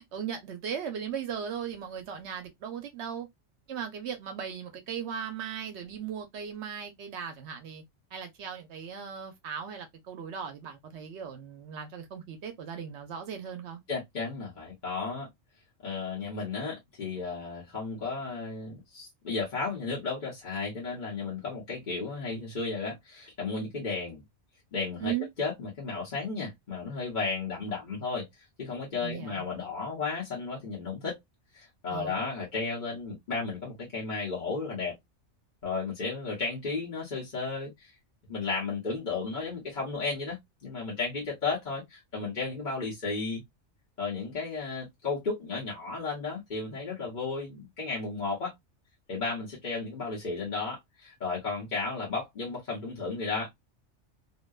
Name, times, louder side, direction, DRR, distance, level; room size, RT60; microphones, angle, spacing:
voice 1, 0.0-3.3 3.7-7.8 8.1-13.8 25.0-25.3 29.0-29.4 31.9-32.2, right 8 dB, 75° right, 0.9 m, -37 dB
voice 2, 13.9-15.3 15.8-24.2 24.7-25.1 25.4-28.3 28.6-31.2 31.5-35.0 35.6-37.9 38.3-43.4 44.0-48.5 49.1-53.6, left 4 dB, 45° left, 1.0 m, -34 dB
2.7 x 2.1 x 2.2 m
omnidirectional pair, 1.2 m